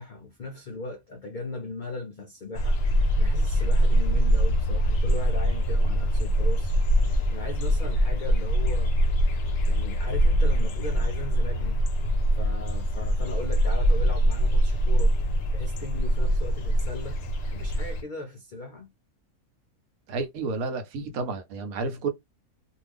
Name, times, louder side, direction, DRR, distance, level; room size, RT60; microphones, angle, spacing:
voice 1, 0.0-6.7 7.3-9.0 9.6-11.8 12.3-15.2 15.5-17.2 17.5-18.9, left 3 dB, 90° left, 0.4 m, -37 dB
sound 1, 2.5-18.0, equal, 65° left, 0.7 m, -23 dB
voice 2, 20.1-22.1, right 4 dB, 75° right, 1.1 m, -31 dB
2.6 x 2.3 x 3.3 m
omnidirectional pair, 1.6 m